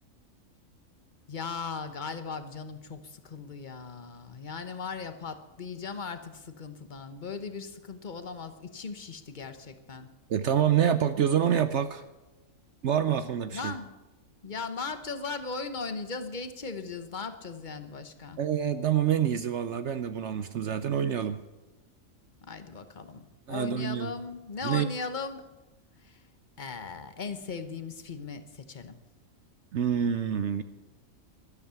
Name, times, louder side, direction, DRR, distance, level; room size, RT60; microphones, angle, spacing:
voice 1, 1.3-10.1 13.5-13.9 14.4-18.4 22.4-25.4 26.0-26.2 26.6-29.0, left 4 dB, 35° left, 10 dB, 1.1 m, -38 dB
voice 2, 10.3-12.0 12.8-13.7 18.4-21.4 23.5-24.1 24.6-24.9 29.7-30.6, right 9 dB, 60° right, 11 dB, 0.9 m, -27 dB
13.0 x 12.5 x 7.0 m, 1.0 s
omnidirectional pair, 1.5 m